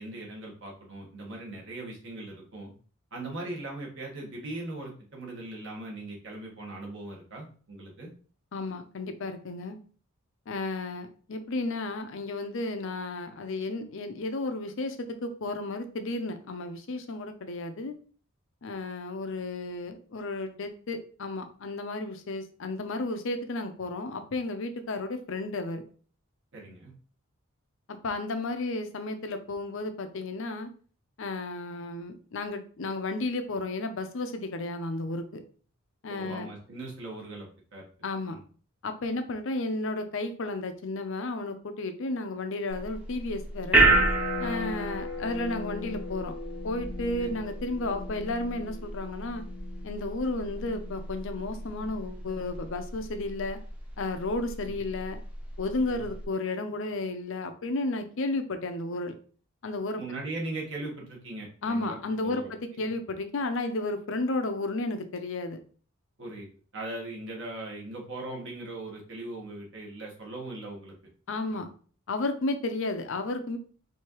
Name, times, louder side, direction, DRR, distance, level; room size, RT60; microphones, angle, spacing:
voice 1, 0.0-2.7 3.1-8.1 26.5-26.9 36.1-37.9 38.3-38.4 47.2-47.3 54.6-54.8 55.8-56.0 59.9-62.9 66.2-70.9 71.3-71.6, right 2 dB, 55° right, -2 dB, 1.5 m, -39 dB
voice 2, 8.5-9.8 10.5-17.9 18.6-25.8 27.9-30.7 31.2-35.4 36.0-36.5 38.0-38.4 38.8-43.9 44.4-46.3 46.6-49.4 49.8-53.6 54.0-55.2 55.6-59.1 59.6-60.0 61.6-65.6 71.3-71.7 72.1-73.6, left 2 dB, 60° left, 8 dB, 0.5 m, -33 dB
sound 1, 42.7-56.2, right 2 dB, 5° right, 0.7 m, -31 dB
4.6 x 2.7 x 3.0 m, 0.42 s
head